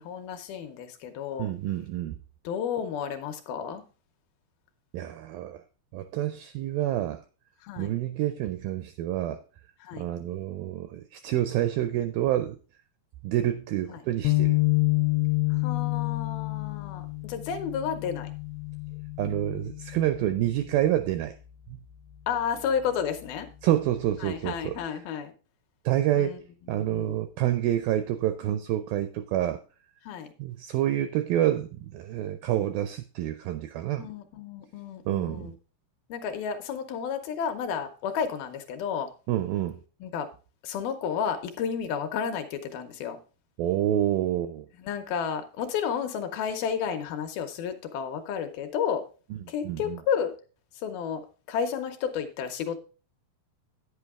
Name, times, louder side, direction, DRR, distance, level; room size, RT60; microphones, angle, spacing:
voice 1, 0.0-1.5 2.4-3.8 7.6-7.9 9.8-10.1 13.9-14.0 15.5-18.3 22.3-23.5 24.2-25.3 26.1-26.4 26.8-27.2 30.1-30.3 34.0-35.5 36.1-39.1 40.0-40.3 40.6-43.2 44.8-49.0 49.5-50.3 50.8-51.2 51.5-52.8, left 7 dB, 75° left, 2.5 m, -31 dB
voice 2, 1.4-2.2 4.9-5.6 5.9-7.2 7.8-9.4 9.9-12.6 13.2-14.6 19.2-21.4 21.7-21.8 23.6-24.8 25.9-26.4 26.7-29.6 30.4-34.1 35.1-35.5 39.3-39.8 43.6-44.7 49.4-50.0, right 12 dB, 85° right, 2.0 m, -28 dB
sound 1, 14.2-20.7, left 24 dB, 90° left, 2.7 m, -28 dB
9.6 x 8.4 x 3.6 m
omnidirectional pair, 4.7 m